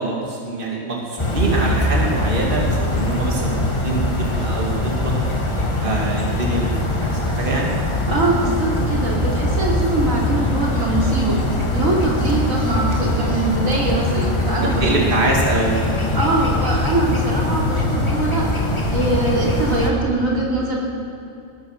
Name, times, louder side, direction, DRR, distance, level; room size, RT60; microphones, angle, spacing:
voice 1, 0.0-5.1 5.8-7.8 14.6-15.8, right 2 dB, 40° right, -2 dB, 2.4 m, -24 dB
sound 1, 1.2-19.9, left 1 dB, 20° left, 1.6 m, -22 dB
voice 2, 8.1-11.4 11.7-15.2 16.1-18.5 18.9-20.8, right 2 dB, 80° right, -4 dB, 3.5 m, -22 dB
18.0 x 12.0 x 6.5 m, 2.6 s
omnidirectional pair, 1.4 m